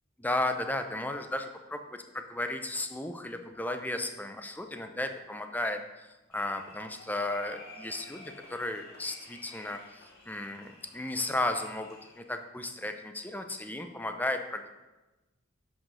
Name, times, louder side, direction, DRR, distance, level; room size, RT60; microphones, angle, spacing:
voice 1, 0.2-14.7, left 1 dB, 10° left, 6 dB, 0.7 m, -34 dB
sound 1, 6.3-12.2, left 1 dB, 50° left, 2.3 m, -51 dB
10.0 x 6.5 x 6.3 m, 1.1 s
head